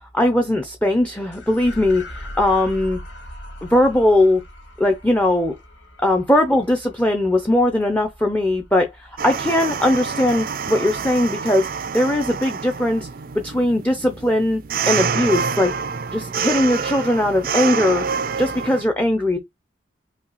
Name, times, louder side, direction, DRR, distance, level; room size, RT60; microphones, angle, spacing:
voice 1, 0.1-3.0 3.6-4.4 4.8-5.5 6.0-11.7 11.9-13.1 13.3-15.7 16.1-18.0 18.4-19.4, left 1 dB, 10° left, 0.6 m, -19 dB
sound 1, 1.3-9.9, equal, 75° left, 2.1 m, -40 dB
sound 2, 9.2-18.8, right 6 dB, 50° right, 0.4 m, -27 dB
5.7 x 2.3 x 3.9 m
head